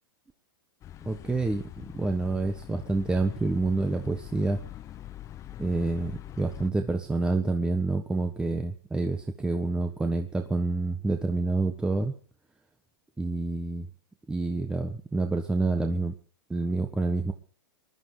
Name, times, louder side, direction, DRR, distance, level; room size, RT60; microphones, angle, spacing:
sound 1, 0.8-6.7, left 12 dB, 25° left, 0.9 m, -43 dB
voice 1, 1.0-4.6 5.6-12.1 13.2-13.9 14.3-16.1 16.5-17.3, right 3 dB, 5° right, 5 dB, 1.3 m, -28 dB
20.5 x 12.0 x 5.0 m, 0.40 s
hypercardioid pair, 135°, 12 cm